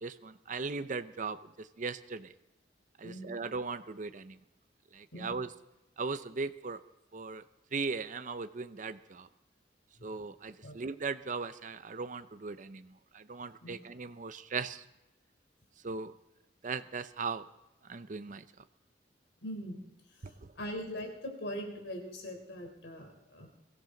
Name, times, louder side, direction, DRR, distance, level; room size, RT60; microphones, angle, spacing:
voice 1, 0.0-2.3 3.0-4.4 4.9-5.5 6.0-6.8 7.1-7.4 7.7-9.3 10.0-14.8 15.8-16.1 16.6-17.5 17.9-18.4 20.2-20.5, right 4 dB, 45° right, 11 dB, 0.6 m, -38 dB
voice 2, 3.0-3.3 5.1-5.3 10.0-10.1 10.6-10.7 13.6-13.7 19.4-19.8 20.1-23.5, equal, 85° left, 3 dB, 3.9 m, -41 dB
23.0 x 15.0 x 3.9 m, 0.94 s
head